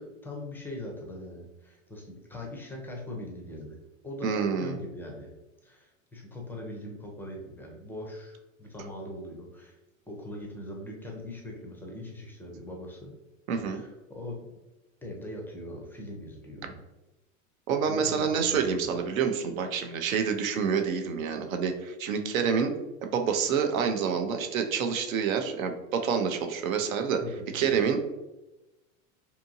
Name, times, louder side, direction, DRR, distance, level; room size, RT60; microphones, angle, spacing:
voice 1, 0.0-3.8 4.0-5.3 5.6-9.8 10.1-13.1 13.7-14.5 15.0-16.8 17.9-19.0 27.2-27.8, left 1 dB, 5° left, -1 dB, 0.4 m, -41 dB
voice 2, 4.2-4.8 13.5-13.8 17.7-22.7 23.0-27.2 27.5-28.1, right 6 dB, 80° right, 6 dB, 0.6 m, -27 dB
2.7 x 2.6 x 2.6 m, 1.0 s
hypercardioid pair, 105°, 40 cm